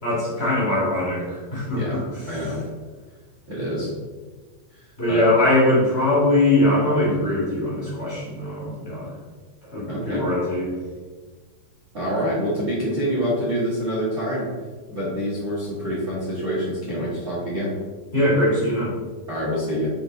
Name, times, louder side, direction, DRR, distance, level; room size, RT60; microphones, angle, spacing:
voice 1, 0.0-2.0 5.0-9.1 9.6-10.7 18.1-18.9, left 1 dB, 30° left, -8 dB, 1.1 m, -21 dB
voice 2, 2.3-2.6 3.5-4.0 5.1-5.4 9.9-10.2 11.9-14.5 14.9-17.8 19.3-19.9, equal, 40° right, -8 dB, 1.3 m, -26 dB
6.9 x 3.6 x 3.9 m, 1.4 s
omnidirectional pair, 4.4 m